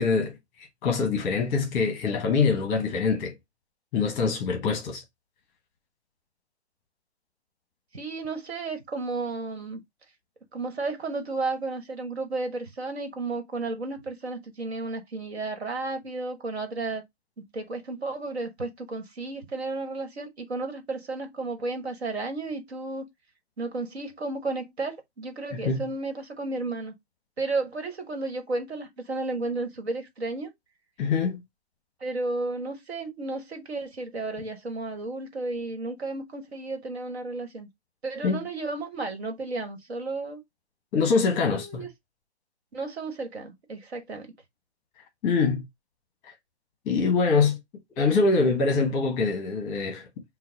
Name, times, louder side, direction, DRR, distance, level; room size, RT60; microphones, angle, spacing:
voice 1, 0.0-3.3 3.9-5.0 25.5-25.9 31.0-31.4 38.2-38.4 40.9-41.8 45.2-45.7 46.2-46.3 46.9-47.6 48.0-50.0, left 4 dB, 15° left, 0.9 m, -24 dB
voice 2, 7.9-9.8 10.5-17.0 17.4-23.0 23.6-26.9 27.4-30.5 32.0-37.7 38.0-40.4 41.3-41.9 42.7-44.3, right 3 dB, 65° right, 1.5 m, -33 dB
5.8 x 2.3 x 3.9 m
figure-of-eight pair, 135°, 34 cm